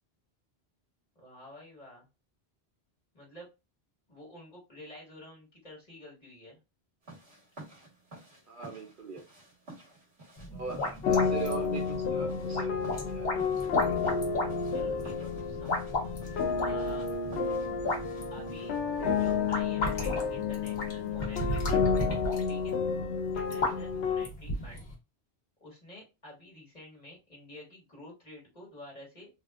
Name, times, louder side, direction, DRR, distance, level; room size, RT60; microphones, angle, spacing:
voice 1, 1.1-2.1 3.1-3.5 4.1-6.6 14.7-15.8 16.6-17.1 18.3-18.7 19.2-21.9 22.5-22.8 23.3-24.9 25.6-29.3, left 1 dB, 40° left, 1.7 m, -49 dB
sound 1, 7.0-19.6, right 1 dB, 75° right, 1.7 m, -53 dB
voice 2, 8.5-9.2 10.5-13.9 17.3-17.8 19.0-19.2, right 5 dB, 60° right, 0.7 m, -41 dB
sound 2, 10.4-24.9, left 1 dB, 65° left, 1.2 m, -35 dB
sound 3, 11.0-24.3, left 5 dB, 85° left, 0.9 m, -31 dB
3.5 x 2.4 x 2.3 m
omnidirectional pair, 1.1 m